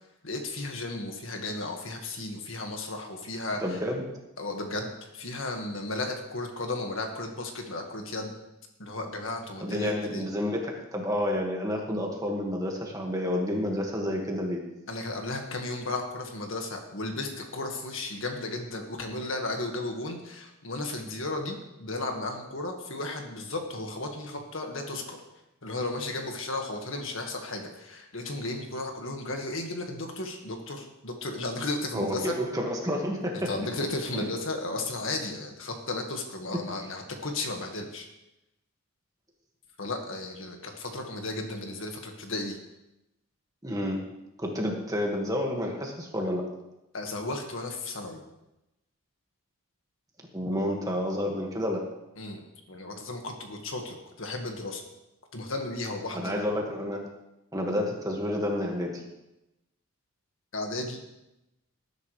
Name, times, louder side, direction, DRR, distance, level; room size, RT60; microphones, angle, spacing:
voice 1, 0.2-3.8 4.4-8.3 8.8-10.2 14.9-25.2 25.6-32.3 33.5-38.1 39.8-42.6 46.9-48.2 52.2-52.4 52.7-54.8 55.3-56.5 60.5-61.0, left 2 dB, 70° left, 3 dB, 1.8 m, -34 dB
voice 2, 3.6-4.0 9.6-10.7 10.9-14.6 31.9-33.3 43.6-44.0 44.4-46.4 50.3-51.8 56.1-57.0 57.5-58.9, left 1 dB, 15° right, 0 dB, 1.9 m, -29 dB
19.0 x 10.5 x 3.3 m, 0.93 s
head